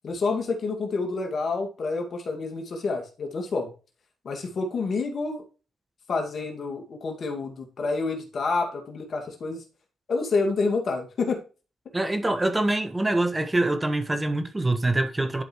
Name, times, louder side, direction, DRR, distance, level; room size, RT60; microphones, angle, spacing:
voice 1, 0.0-3.7 4.2-5.4 6.1-9.6 10.1-11.4, left 3 dB, 60° left, 2.1 m, -28 dB
voice 2, 11.9-15.4, right 2 dB, 20° right, 1.4 m, -24 dB
11.5 x 5.0 x 3.1 m
supercardioid pair, 60°, 0 cm